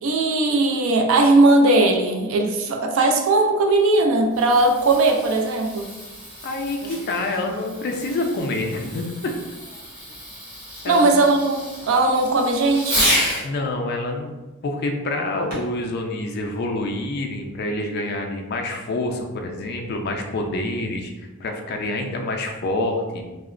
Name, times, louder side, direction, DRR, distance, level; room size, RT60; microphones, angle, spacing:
voice 1, 0.0-5.9 10.9-13.1, right 2 dB, 60° right, 3 dB, 0.3 m, -18 dB
Fireworks, 4.2-13.5 15.5-15.8 16.5-16.6, equal, 40° right, 1.0 m, -30 dB
voice 2, 6.4-9.3 10.8-11.1 13.4-14.3 14.6-21.1 21.4-23.2, left 2 dB, 45° left, 3 dB, 0.3 m, -27 dB
2.8 x 2.0 x 2.4 m, 1.2 s
head